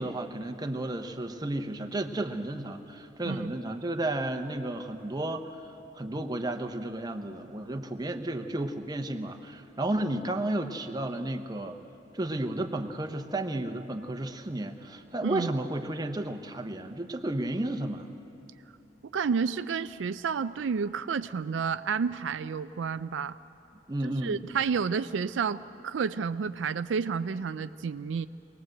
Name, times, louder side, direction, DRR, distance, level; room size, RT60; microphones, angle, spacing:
voice 1, 0.0-11.8 12.1-18.1 23.9-24.4, right 1 dB, 20° right, 6 dB, 1.0 m, -33 dB
voice 2, 19.1-23.4 24.2-28.3, right 6 dB, 80° right, 12 dB, 0.4 m, -30 dB
23.0 x 19.0 x 7.8 m, 2.9 s
head